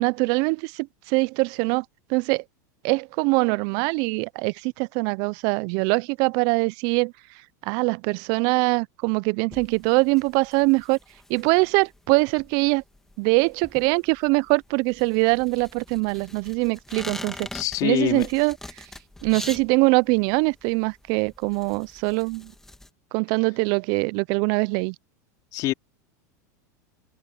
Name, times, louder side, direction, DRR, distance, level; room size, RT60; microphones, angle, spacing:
voice 1, 0.0-1.8 2.1-2.4 2.8-7.1 7.6-11.0 11.3-12.8 13.2-17.5 17.8-18.6 19.2-22.5 23.1-24.9, right 29 dB, 45° right, 0.3 m, -23 dB
sound 1, 9.5-22.9, left 1 dB, 5° left, 2.1 m, -43 dB
voice 2, 17.5-18.3 25.5-25.7, left 16 dB, 40° left, 3.0 m, -25 dB
supercardioid pair, 145°, 10 cm